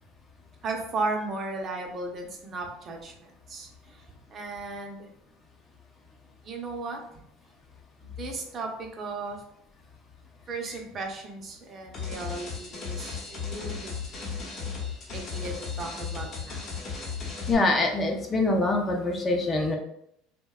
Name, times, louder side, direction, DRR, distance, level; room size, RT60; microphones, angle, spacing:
voice 1, 0.6-4.0 4.3-5.1 6.4-7.2 8.0-9.4 10.5-13.9 15.1-16.6, right 3 dB, 40° right, 2 dB, 0.6 m, -35 dB
sound 1, 11.9-17.5, left 5 dB, 50° left, 0.9 m, -35 dB
voice 2, 17.5-19.8, left 2 dB, 25° left, 1 dB, 0.5 m, -24 dB
2.6 x 2.1 x 2.3 m, 0.75 s
supercardioid pair, 90°, 0 cm